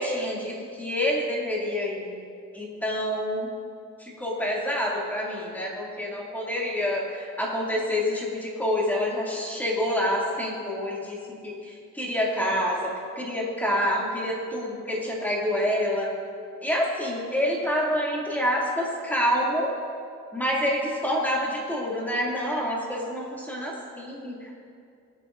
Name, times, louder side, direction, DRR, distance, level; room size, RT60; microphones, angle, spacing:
voice 1, 0.0-2.1 2.5-3.6 4.0-11.2 11.4-16.1 16.6-19.7 20.3-24.5, equal, 5° left, -4 dB, 2.5 m, -27 dB
21.5 x 9.1 x 2.6 m, 2.4 s
cardioid pair, 130°, 31 cm